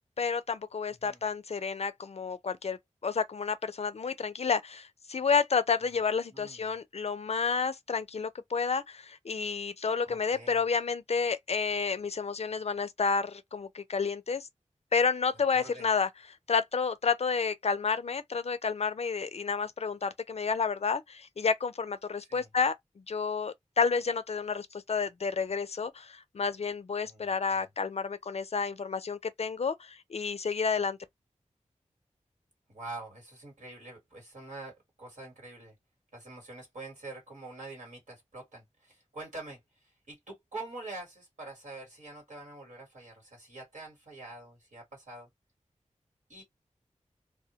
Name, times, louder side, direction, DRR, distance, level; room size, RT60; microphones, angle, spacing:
voice 1, 0.2-2.8 3.0-14.5 14.9-16.1 16.5-22.7 23.1-31.0, left 5 dB, 55° left, 0.4 m, -30 dB
voice 2, 6.3-6.6 10.1-10.6 15.5-15.9 22.2-22.5 27.0-27.3 32.7-35.7 36.1-45.3 46.3-46.4, right 2 dB, 75° right, 1.2 m, -45 dB
2.1 x 2.1 x 2.8 m
wide cardioid pair, 55°, 13 cm